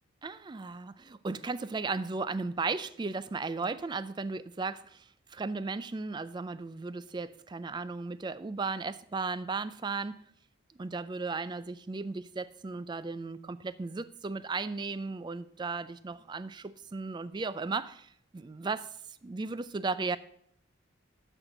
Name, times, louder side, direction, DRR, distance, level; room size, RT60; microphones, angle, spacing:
voice 1, 0.2-5.0 5.3-10.2 10.8-18.9 19.2-20.2, right 4 dB, 20° right, 0.3 m, -35 dB
12.0 x 4.5 x 6.5 m
head